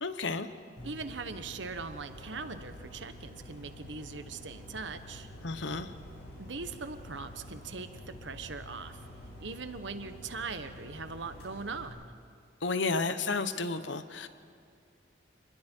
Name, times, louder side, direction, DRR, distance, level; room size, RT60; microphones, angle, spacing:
voice 1, 0.0-0.5 5.4-5.9 12.6-14.3, left 3 dB, 75° left, 10 dB, 1.1 m, -32 dB
sound 1, 0.8-11.9, equal, 60° left, 5.9 m, -48 dB
voice 2, 0.8-5.3 6.4-9.0 9.4-12.0, right 4 dB, 75° right, 9 dB, 1.2 m, -40 dB
28.0 x 21.0 x 4.6 m, 2.3 s
head